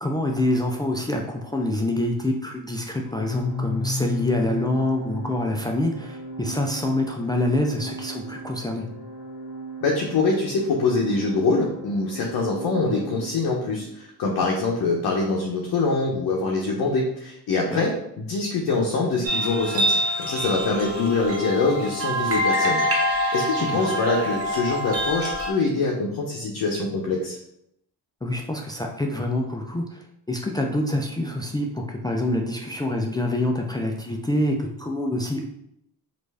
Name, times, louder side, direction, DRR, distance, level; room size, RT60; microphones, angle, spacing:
voice 1, 0.0-8.9 17.7-17.8 23.8-24.0 28.2-35.5, left 1 dB, 10° left, 1 dB, 0.4 m, -26 dB
Organ, 3.1-13.8, left 1 dB, 35° left, 1.0 m, -35 dB
voice 2, 9.8-22.8 23.3-27.4, left 3 dB, 60° left, -2 dB, 0.7 m, -24 dB
sound 1, 19.2-25.5, equal, 35° right, 0.9 m, -25 dB
3.1 x 2.6 x 3.3 m, 0.78 s
cardioid pair, 75°, 39 cm